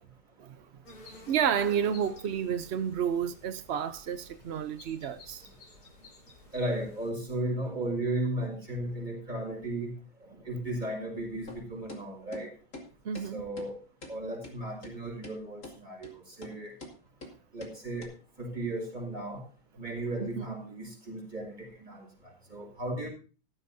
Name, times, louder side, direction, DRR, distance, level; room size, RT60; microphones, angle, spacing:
sound 1, 0.8-7.1, left 1 dB, 60° left, 4.9 m, -52 dB
voice 1, 1.3-5.5 13.0-13.4 20.2-20.4, right 8 dB, 65° right, 0.6 m, -30 dB
voice 2, 6.5-9.9 10.4-12.5 13.3-13.8 14.1-16.7 17.5-18.1 18.4-19.4 19.8-22.1 22.5-23.1, right 1 dB, 25° right, 5.5 m, -35 dB
sound 2, 11.5-11.6 11.9-12.0 12.3-12.4 12.7-12.9 13.1-13.3 13.6-13.7 14.0-14.1 14.4-14.5 14.8-14.9 15.2-15.4 15.6-15.8 16.0-16.1 16.4-16.5 16.8-16.9 17.2-17.3 17.6-17.7 18.0-18.1, left 2 dB, 40° left, 3.3 m, -44 dB
14.5 x 13.0 x 2.7 m
omnidirectional pair, 2.0 m